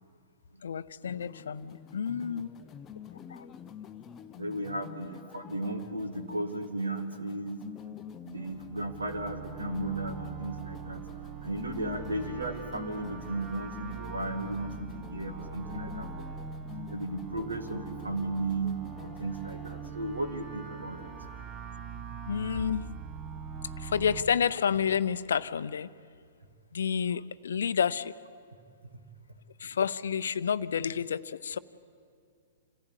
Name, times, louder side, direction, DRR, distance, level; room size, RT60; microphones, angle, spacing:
voice 1, 0.6-2.5 3.3-3.5 22.3-22.8 23.8-25.9 26.7-28.1 29.6-31.6, left 7 dB, 65° left, 15 dB, 0.6 m, -30 dB
sound 1, 1.0-19.9, left 10 dB, 20° left, 0.6 m, -47 dB
voice 2, 2.4-2.7 4.4-7.6 8.2-11.0 11.4-16.4 16.9-21.1, right 2 dB, 80° right, 6 dB, 2.2 m, -35 dB
sound 2, 8.3-24.2, right 7 dB, 25° right, 1.5 m, -42 dB
27.5 x 15.0 x 8.2 m, 2.2 s
figure-of-eight pair, 110°, 0 cm